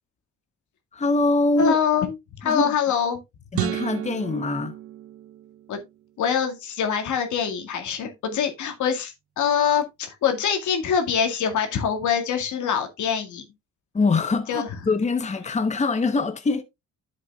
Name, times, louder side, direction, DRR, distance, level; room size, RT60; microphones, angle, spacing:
voice 1, 0.9-1.8 2.4-2.7 3.5-4.8 13.9-16.6, left 3 dB, 25° left, 1.0 m, -23 dB
voice 2, 1.6-3.2 5.7-5.8 6.2-13.4 14.5-14.7, left 7 dB, 75° left, 2.1 m, -24 dB
sound 1, 3.5-5.9, right 12 dB, 50° right, 0.6 m, -32 dB
10.5 x 7.5 x 2.4 m
cardioid pair, 90°, 30 cm